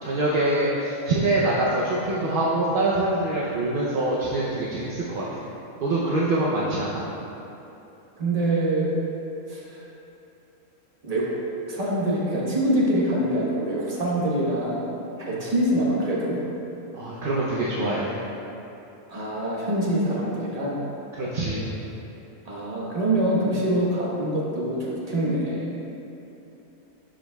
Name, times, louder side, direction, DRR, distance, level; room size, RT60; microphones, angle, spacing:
voice 1, 0.0-5.4 5.8-7.0 15.3-15.4 16.9-18.2 21.1-21.7, right 2 dB, 50° right, -6 dB, 0.7 m, -25 dB
voice 2, 8.2-8.9 9.5-9.8 11.0-11.3 11.7-14.8 15.2-16.4 19.1-20.8 22.5-25.7, right 1 dB, 30° right, -6 dB, 1.1 m, -25 dB
11.0 x 5.1 x 2.3 m, 2.9 s
omnidirectional pair, 1.5 m